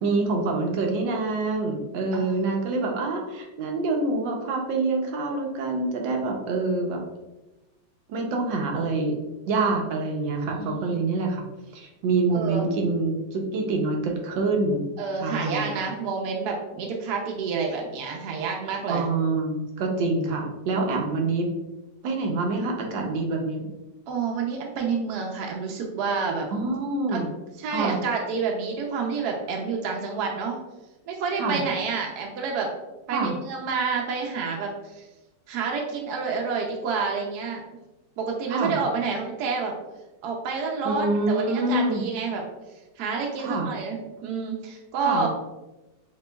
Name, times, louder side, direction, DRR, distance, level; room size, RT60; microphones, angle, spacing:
voice 1, 0.0-7.0 8.1-9.2 9.5-11.4 11.7-14.9 15.2-15.9 18.9-21.5 22.0-23.7 26.5-27.3 27.7-28.0 31.4-31.6 33.1-33.3 38.5-38.8 40.8-42.0 43.4-43.7 45.0-45.3, right 3 dB, 90° right, 1 dB, 1.4 m, -26 dB
voice 2, 10.5-11.1 12.3-12.6 15.0-19.1 24.1-26.5 27.1-27.2 27.6-30.6 31.1-32.7 33.1-35.1 35.5-37.6 38.2-39.7 40.2-42.4 43.0-45.3, right 5 dB, 70° right, 0 dB, 1.1 m, -29 dB
6.0 x 2.9 x 2.2 m, 1.0 s
omnidirectional pair, 2.0 m